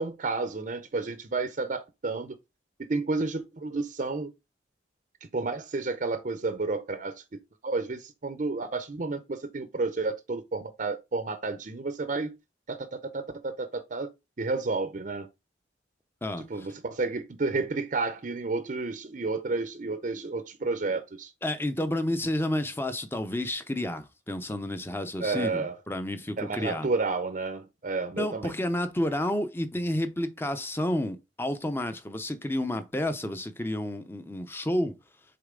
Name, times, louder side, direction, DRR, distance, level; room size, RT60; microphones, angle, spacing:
voice 1, 0.0-2.3 2.9-4.3 5.3-7.2 7.6-12.4 12.7-14.1 14.4-15.3 16.5-21.3 25.2-25.7 26.4-28.5, right 3 dB, 45° right, 0.6 m, -31 dB
voice 2, 16.2-16.7 21.4-26.9 28.1-35.0, left 1 dB, 15° left, 0.6 m, -30 dB
6.7 x 4.0 x 3.7 m
head